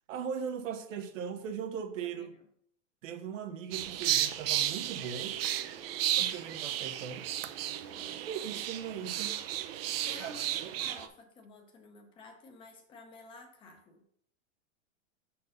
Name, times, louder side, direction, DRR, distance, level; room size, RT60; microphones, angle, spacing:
voice 1, 0.1-2.3 3.0-5.4 6.2-7.3 8.2-9.4 10.2-10.3, right 7 dB, 85° right, 1.0 m, -39 dB
sound 1, 3.7-11.1, right 12 dB, 50° right, 0.6 m, -33 dB
voice 2, 7.9-8.3 10.0-14.0, left 3 dB, 15° left, 0.7 m, -51 dB
5.5 x 4.4 x 5.2 m
supercardioid pair, 170°, 37 cm